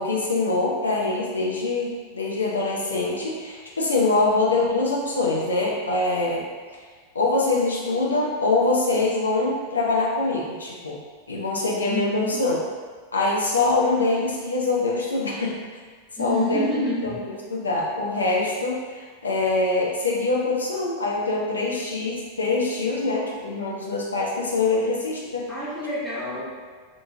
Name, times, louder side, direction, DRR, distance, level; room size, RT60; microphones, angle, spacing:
voice 1, 0.0-6.5 7.1-11.0 11.3-12.6 13.1-15.6 16.2-16.7 17.0-25.5, left 3 dB, 75° left, -3 dB, 0.4 m, -24 dB
voice 2, 11.9-12.4 16.2-17.2 25.5-26.5, left 1 dB, 5° left, -9 dB, 0.9 m, -28 dB
2.5 x 2.3 x 2.7 m, 1.5 s
figure-of-eight pair, 90°, 0 cm